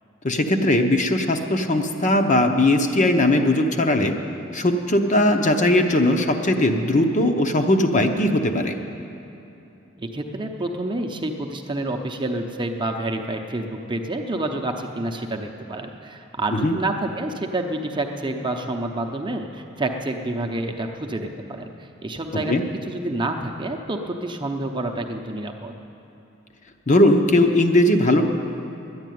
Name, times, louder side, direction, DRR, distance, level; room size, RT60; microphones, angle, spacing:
voice 1, 0.2-4.1 4.5-8.8 16.5-16.7 22.5-22.6 26.9-28.2, left 1 dB, 40° left, 5 dB, 0.8 m, -19 dB
voice 2, 10.0-22.5 22.9-25.7, right 2 dB, 25° right, 4 dB, 0.8 m, -28 dB
11.0 x 9.6 x 9.3 m, 3.0 s
head